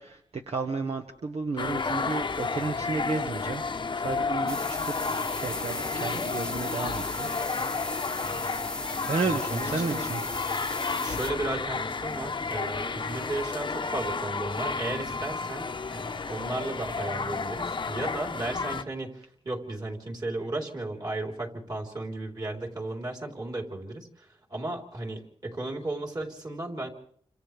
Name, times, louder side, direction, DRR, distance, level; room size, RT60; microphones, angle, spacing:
voice 1, 0.0-3.6 3.9-4.9 5.4-7.3 9.1-10.3, right 4 dB, 70° right, 3 dB, 1.5 m, -32 dB
sound 1, 1.6-18.8, left 4 dB, 45° left, 0.9 m, -32 dB
sound 2, 4.5-11.3, left 1 dB, 10° left, 0.8 m, -37 dB
voice 2, 9.5-10.1 11.0-26.9, right 2 dB, 40° right, 0 dB, 4.1 m, -35 dB
29.0 x 26.0 x 3.5 m, 0.64 s
wide cardioid pair, 90°, 11 cm